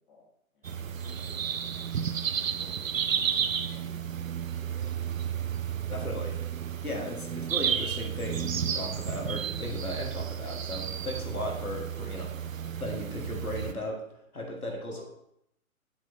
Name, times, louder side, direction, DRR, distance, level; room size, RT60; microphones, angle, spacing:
voice 1, 0.5-1.6 2.4-3.0 3.4-4.1 4.5-4.9 5.7-5.8 14.9-15.0, left 3 dB, 35° left, -3 dB, 1.6 m, -57 dB
sound 1, 0.6-13.7, right 8 dB, 70° right, 0.5 m, -32 dB
voice 2, 5.9-6.4 6.8-14.0 14.3-15.0, left 1 dB, 85° left, -1 dB, 1.6 m, -36 dB
7.5 x 4.7 x 2.7 m, 0.77 s
figure-of-eight pair, 135°, 42 cm